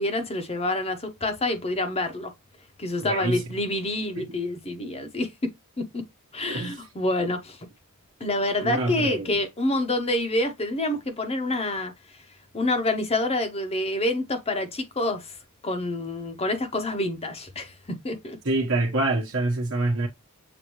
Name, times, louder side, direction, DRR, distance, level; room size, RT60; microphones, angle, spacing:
voice 1, 0.0-2.3 2.8-5.5 5.8-6.0 6.3-7.6 8.2-11.9 12.5-15.4 15.6-17.7 18.0-18.4, left 1 dB, 25° left, 0.8 m, -27 dB
voice 2, 3.0-3.4 4.2-4.4 6.5-6.8 8.6-9.3 18.4-20.1, right 2 dB, 60° right, 1.0 m, -26 dB
7.0 x 2.6 x 3.0 m
head